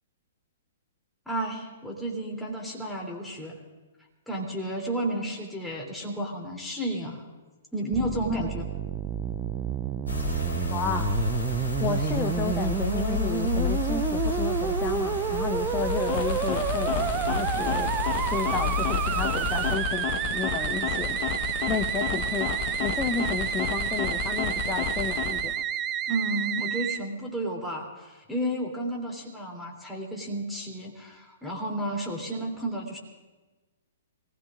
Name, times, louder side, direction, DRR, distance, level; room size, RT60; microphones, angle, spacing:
voice 1, 1.2-3.6 4.3-7.2 7.7-8.6 26.1-33.0, right 1 dB, 5° left, -2 dB, 3.1 m, -32 dB
Musical instrument, 7.9-27.0, right 9 dB, 20° right, 0.6 m, -30 dB
sound 1, 10.1-19.7, left 3 dB, 75° left, 3.7 m, -30 dB
voice 2, 10.7-11.1 11.8-17.9 18.3-21.2 21.7-25.5, left 6 dB, 20° left, 8 dB, 0.7 m, -32 dB
sound 2, 15.7-25.6, left 7 dB, 40° left, 1.3 m, -32 dB
24.5 x 19.0 x 2.5 m, 1.2 s
figure-of-eight pair, 115°, 0 cm